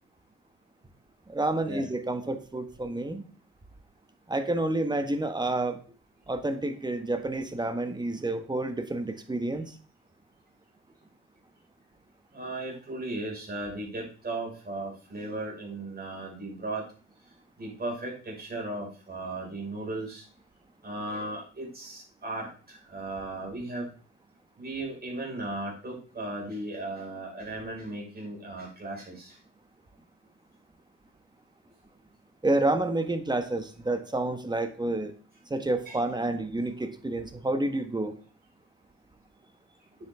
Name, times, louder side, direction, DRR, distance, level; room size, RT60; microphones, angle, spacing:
voice 1, 1.3-3.2 4.3-5.8 6.3-9.8 32.4-35.1 35.5-38.1, right 2 dB, 15° right, 1.3 m, -29 dB
voice 2, 12.3-16.8 17.6-20.2 20.8-23.9 24.6-29.3 35.9-36.0, right 2 dB, 30° right, 5.3 m, -36 dB
9.4 x 7.6 x 3.6 m
cardioid pair, 90°, 30 cm